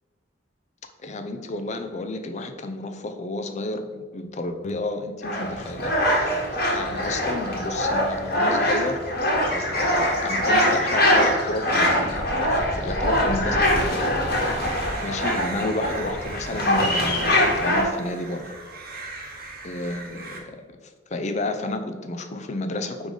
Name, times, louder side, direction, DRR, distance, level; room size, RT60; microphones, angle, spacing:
voice 1, 1.0-9.1 9.5-14.1 14.4-18.6 18.9-19.1 19.6-23.1, left 2 dB, 35° left, 7 dB, 0.5 m, -32 dB
sound 1, 5.2-17.8, left 1 dB, 55° left, 1.4 m, -23 dB
sound 2, 14.6-20.4, right 3 dB, 50° right, 0.9 m, -39 dB
5.1 x 3.9 x 4.9 m, 1.5 s
head